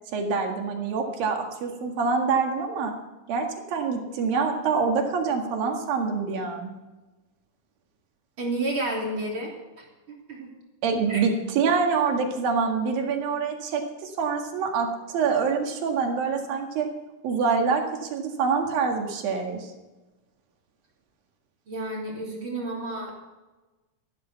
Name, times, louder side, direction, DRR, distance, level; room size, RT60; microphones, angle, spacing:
voice 1, 0.1-2.9 3.3-6.7 10.8-16.9 17.2-19.7, right 5 dB, 85° right, 3 dB, 3.7 m, -26 dB
voice 2, 8.4-9.5 9.8-10.5 11.1-11.2 21.7-23.2, right 2 dB, 35° right, -2 dB, 3.8 m, -31 dB
14.5 x 12.0 x 7.0 m, 1.1 s
omnidirectional pair, 4.0 m